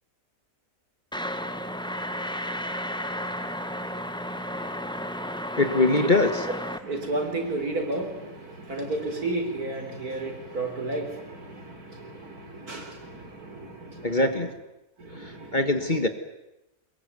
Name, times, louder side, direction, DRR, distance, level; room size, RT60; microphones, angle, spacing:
sound 1, 1.1-6.8, equal, 5° left, 1.3 m, -33 dB
voice 1, 5.6-6.3 14.0-14.5 15.2-16.1, left 2 dB, 30° left, 9 dB, 1.6 m, -22 dB
voice 2, 6.8-14.4 15.0-16.0, right 2 dB, 70° right, 4 dB, 4.5 m, -33 dB
23.0 x 21.5 x 9.5 m, 0.92 s
omnidirectional pair, 1.6 m